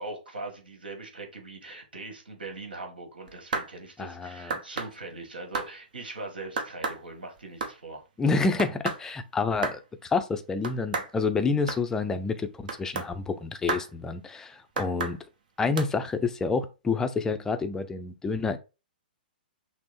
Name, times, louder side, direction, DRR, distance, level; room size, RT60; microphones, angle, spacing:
voice 1, 0.0-8.0, right 3 dB, 75° right, 1.6 m, -41 dB
sound 1, 3.3-3.7 4.5-4.9 5.5-5.7 6.6-7.0 7.4-7.7 8.6-9.0 9.6-9.8 10.6-11.1 11.7-11.8 12.7-13.1 13.7-13.9 14.8-15.2 15.8-15.9, right 4 dB, 55° right, 0.9 m, -31 dB
voice 2, 4.0-4.6 8.2-15.2 15.6-18.6, left 4 dB, 10° left, 0.5 m, -28 dB
6.0 x 2.0 x 4.1 m
figure-of-eight pair, 120°, 5 cm